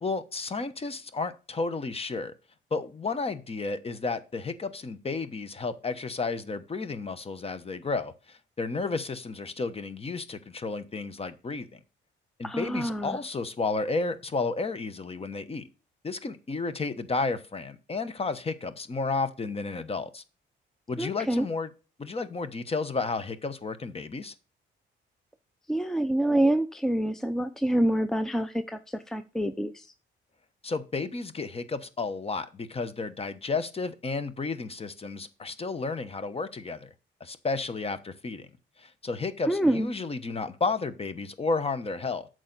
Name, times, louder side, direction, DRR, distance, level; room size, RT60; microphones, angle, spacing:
voice 1, 0.0-2.3 2.7-11.8 12.4-15.6 16.0-20.2 20.9-21.7 22.0-24.3 30.6-36.9 37.2-38.5 38.8-42.3, left 3 dB, 30° left, 1.0 m, -32 dB
voice 2, 12.4-13.2 21.0-21.5 25.7-29.9 39.5-39.9, right 1 dB, ahead, 0.6 m, -27 dB
8.7 x 6.4 x 4.0 m
cardioid pair, 90°, 20 cm